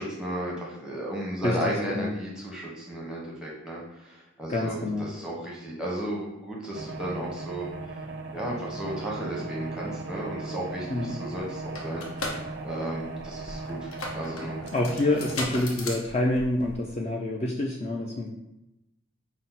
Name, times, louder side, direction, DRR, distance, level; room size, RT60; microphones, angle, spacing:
voice 1, 0.0-7.7 8.3-12.3 12.6-14.6, right 1 dB, 5° right, -3 dB, 0.8 m, -34 dB
voice 2, 1.4-2.1 4.5-5.1 10.9-11.1 14.4-18.3, left 1 dB, 30° left, 0 dB, 0.4 m, -27 dB
sound 1, 6.7-15.4, right 3 dB, 50° right, 0.4 m, -38 dB
sound 2, 11.0-11.1 11.3-17.0, left 2 dB, 80° left, 0.8 m, -37 dB
5.6 x 2.1 x 4.0 m, 0.91 s
head